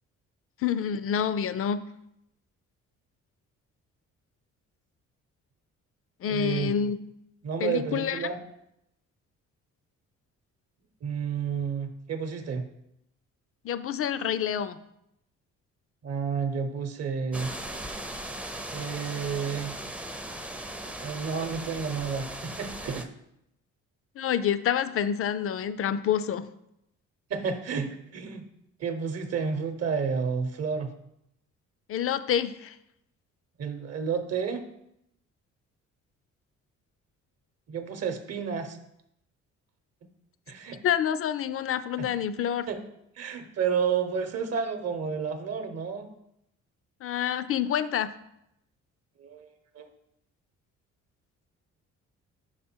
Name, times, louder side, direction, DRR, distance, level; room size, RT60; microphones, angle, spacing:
voice 1, 0.6-1.8 6.2-7.0 7.6-8.3 13.6-14.8 24.2-26.5 31.9-32.7 40.8-42.7 47.0-48.1, left 8 dB, 50° left, 14 dB, 0.5 m, -27 dB
voice 2, 6.3-6.7 7.4-8.4 11.0-12.7 16.0-17.5 18.7-19.7 21.0-23.1 27.3-28.4 28.8-30.9 33.6-34.7 37.7-38.8 40.5-40.8 42.0-42.1 42.7-42.8 43.2-46.1 49.2-49.5 49.7-49.9, right 6 dB, 55° right, 7 dB, 0.8 m, -31 dB
sound 1, 17.3-23.1, right 1 dB, 5° right, 0.5 m, -38 dB
5.4 x 4.9 x 4.4 m, 0.80 s
cardioid pair, 90°, 30 cm